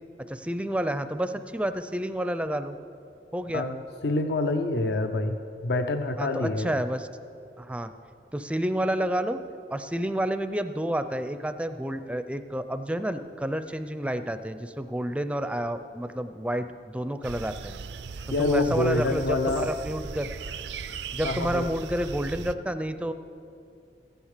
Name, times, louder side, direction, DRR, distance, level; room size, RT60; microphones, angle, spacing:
voice 1, 0.3-2.7 3.3-3.7 6.2-7.1 7.6-7.9 8.3-9.4 9.7-16.7 16.9-17.8 18.4-20.3 21.1-23.1, right 1 dB, 5° right, 10 dB, 0.4 m, -29 dB
voice 2, 3.5-5.4 5.6-6.8 18.3-19.7 21.2-21.7, left 2 dB, 70° left, 7 dB, 0.6 m, -26 dB
sound 1, 17.2-22.5, right 5 dB, 80° right, 0.5 m, -38 dB
15.0 x 10.5 x 6.6 m, 2.6 s
head